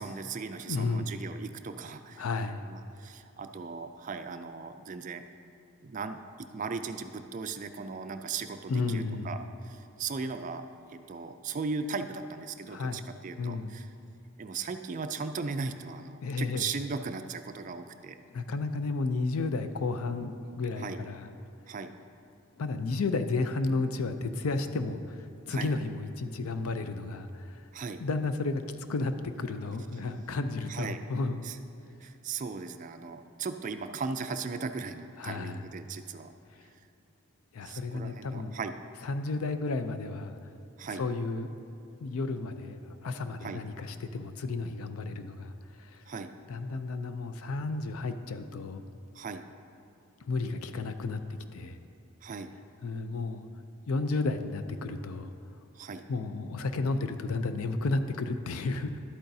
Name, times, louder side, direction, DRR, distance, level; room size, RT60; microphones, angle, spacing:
voice 1, 0.0-2.2 2.6-5.2 5.8-10.6 10.9-13.9 14.4-18.2 20.8-21.0 21.7-21.9 25.5-25.7 27.7-28.0 30.7-31.0 31.4-31.6 32.0-36.3 36.6-36.7 37.6-38.7 40.8-41.0 43.4-43.6 46.1-46.3 49.1-49.4 52.2-52.5 55.7-56.1, right 4 dB, 35° right, 8 dB, 0.3 m, -37 dB
voice 2, 0.7-1.2 2.2-2.6 8.7-9.4 12.7-13.0 13.4-13.7 16.2-16.7 18.3-21.3 22.6-27.6 28.0-28.6 28.9-31.4 35.2-35.6 37.5-38.6 39.0-40.4 41.0-41.5 42.0-45.5 45.8-46.0 46.5-48.8 50.2-51.2 51.5-51.8 52.8-53.5 53.9-55.3 56.1-59.0, left 3 dB, 85° left, 9 dB, 0.5 m, -32 dB
11.5 x 8.6 x 2.7 m, 2.8 s
head